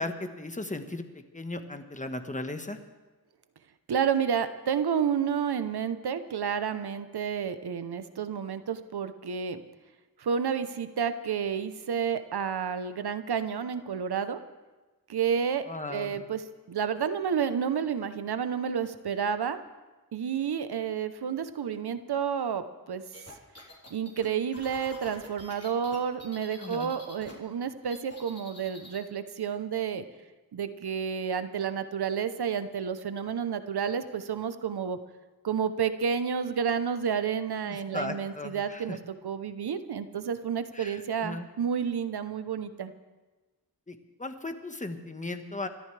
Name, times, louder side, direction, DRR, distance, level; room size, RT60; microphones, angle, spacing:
voice 1, 0.0-2.8 15.7-16.2 26.6-26.9 37.6-39.0 40.7-41.5 43.9-45.7, left 2 dB, 20° left, 7 dB, 1.4 m, -37 dB
voice 2, 3.9-9.6 10.2-14.4 15.1-16.4 16.7-19.6 20.1-23.0 23.9-30.0 30.5-35.0 35.4-39.0 39.2-42.9, right 7 dB, 85° right, 11 dB, 0.9 m, -30 dB
sound 1, 23.1-27.3 27.6-29.0, left 2 dB, 40° left, 3.8 m, -48 dB
28.5 x 13.5 x 3.4 m, 1.2 s
wide cardioid pair, 65°, 38 cm